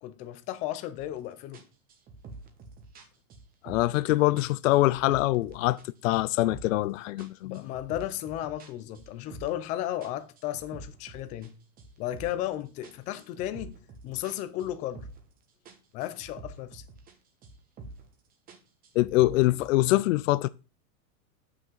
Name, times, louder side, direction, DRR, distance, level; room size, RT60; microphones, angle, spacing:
voice 1, 0.0-1.7 7.4-11.6 12.0-15.1 15.9-16.8, left 13 dB, 20° left, 0.4 m, -34 dB
sound 1, 1.0-1.2 1.5-4.1 4.4-5.9 6.1-6.8 7.2-9.7 10.0-12.5 12.8-15.4 15.6-17.2 17.4-18.1 18.5-19.9, right 3 dB, 20° right, 1.3 m, -47 dB
voice 2, 3.6-7.6 19.0-20.5, left 18 dB, 65° left, 0.5 m, -24 dB
7.0 x 6.5 x 7.3 m
supercardioid pair, 165°, 42 cm